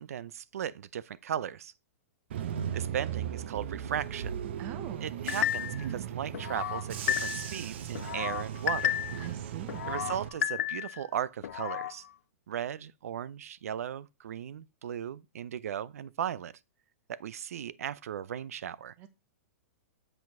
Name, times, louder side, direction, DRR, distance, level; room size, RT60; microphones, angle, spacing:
voice 1, 0.0-1.7 2.7-4.3 5.0-9.0 9.9-12.1 12.5-16.5 17.1-18.9, right 9 dB, 80° right, 0.5 m, -37 dB
Bus / Engine, 2.3-10.3, right 9 dB, 50° right, 0.8 m, -37 dB
voice 2, 4.6-5.1 9.2-9.9 19.0-19.1, right 10 dB, 20° right, 0.8 m, -43 dB
sound 1, 5.3-5.9 6.3-7.6 7.9-9.3 9.7-11.0 11.4-11.9, left 11 dB, 70° left, 0.5 m, -32 dB
7.9 x 4.7 x 4.6 m
supercardioid pair, 175°, 8 cm